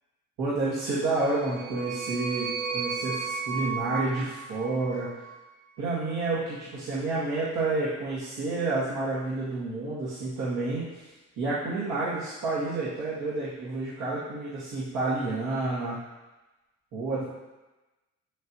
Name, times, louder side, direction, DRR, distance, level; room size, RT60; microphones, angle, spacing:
voice 1, 0.4-2.5 2.7-5.2 5.8-11.1 11.4-16.0 16.9-17.2, right 2 dB, 90° right, -10 dB, 2.0 m, -29 dB
sound 1, 1.0-5.4, right 6 dB, 60° right, 2.3 m, -34 dB
7.9 x 7.3 x 3.1 m, 1.1 s
cardioid pair, 90°, 30 cm